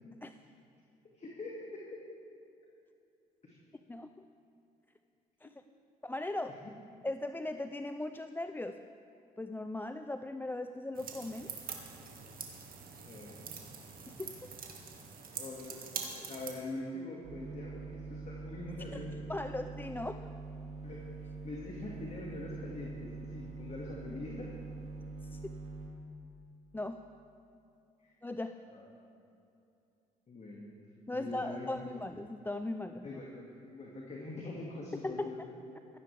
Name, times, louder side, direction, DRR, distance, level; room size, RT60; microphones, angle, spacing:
voice 1, 1.1-1.8 3.4-3.6 13.1-13.4 15.4-15.8 16.1-19.1 20.8-21.0 21.4-24.5 28.0-28.1 28.7-28.9 30.3-30.7 31.1-31.9 33.0-35.4, left 2 dB, 35° left, -3 dB, 2.2 m, -43 dB
voice 2, 6.0-6.5 7.0-8.8 9.4-11.5 14.2-14.5 19.3-20.2 25.2-25.4 26.7-27.0 28.2-28.5 31.1-33.2 35.0-35.3, left 2 dB, 10° left, 9 dB, 0.5 m, -38 dB
sound 1, 10.9-16.5, right 6 dB, 50° right, 2.0 m, -44 dB
sound 2, 17.2-25.9, right 3 dB, 35° right, 3.3 m, -44 dB
15.5 x 15.0 x 3.5 m, 2.7 s
hypercardioid pair, 55°, 19 cm